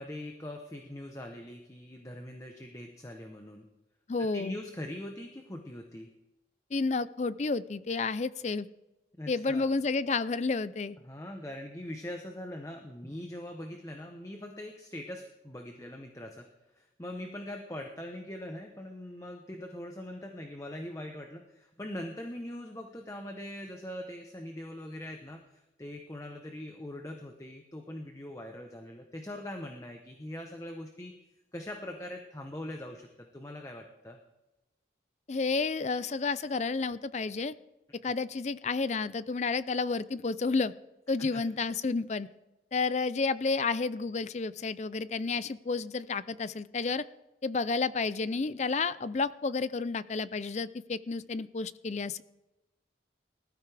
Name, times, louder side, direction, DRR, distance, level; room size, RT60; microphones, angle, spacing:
voice 1, 0.0-3.7 4.2-6.1 9.2-9.7 11.0-16.5 16.7-31.1 31.5-34.2 38.0-38.1 41.2-41.4, left 1 dB, 15° left, 3 dB, 0.9 m, -42 dB
voice 2, 4.1-4.6 6.7-8.7 9.3-11.0 35.3-37.5 38.0-40.7 41.1-42.3 42.7-47.0 47.4-52.2, left 4 dB, 35° left, 16 dB, 0.4 m, -31 dB
20.0 x 13.5 x 3.4 m, 0.99 s
head